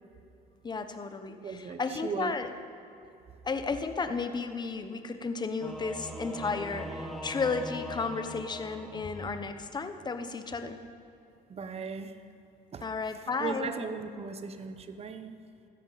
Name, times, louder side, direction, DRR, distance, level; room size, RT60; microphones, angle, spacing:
voice 1, 0.6-2.5 3.4-10.8 12.8-13.7, left 4 dB, 25° left, 8 dB, 1.0 m, -33 dB
voice 2, 1.4-2.3 11.5-12.1 12.7-12.8 13.4-15.4, right 5 dB, 35° right, 10 dB, 1.0 m, -37 dB
Singing / Musical instrument, 5.6-9.7, equal, ahead, 1.6 m, -41 dB
16.0 x 13.0 x 4.1 m, 2.7 s
cardioid pair, 110°, 17 cm